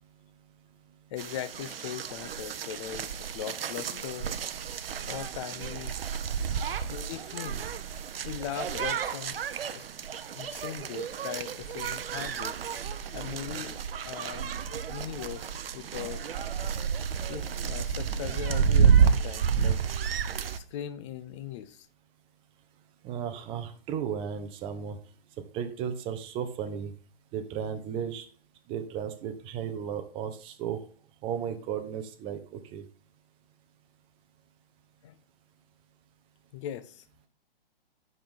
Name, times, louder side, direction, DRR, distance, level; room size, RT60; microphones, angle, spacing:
voice 1, 1.1-4.3 5.0-6.0 6.9-7.6 8.2-9.8 10.3-12.6 13.1-13.8 14.1-14.5 14.9-16.3 17.3-19.8 20.6-21.9 35.0-35.2 36.5-37.0, left 10 dB, 30° left, 0.6 m, -39 dB
sound 1, 1.2-20.6, right 7 dB, 70° right, 0.7 m, -30 dB
voice 2, 23.0-25.0 25.5-26.9 27.3-28.3 28.7-30.8 31.2-32.8, right 8 dB, 20° right, 0.7 m, -34 dB
8.4 x 5.4 x 3.7 m
hypercardioid pair, 135°, 30 cm